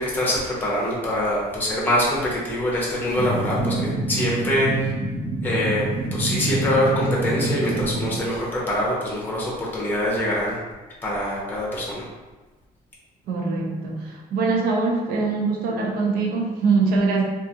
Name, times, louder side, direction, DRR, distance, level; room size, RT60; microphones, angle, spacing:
voice 1, 0.0-4.9 5.4-10.6 11.0-12.1, left 1 dB, 10° left, -5 dB, 0.6 m, -24 dB
sound 1, 3.1-8.2, right 2 dB, 60° right, 1.0 m, -26 dB
voice 2, 13.3-17.2, right 4 dB, 80° right, 0 dB, 0.5 m, -23 dB
2.4 x 2.3 x 2.7 m, 1.2 s
cardioid pair, 155°, 15 cm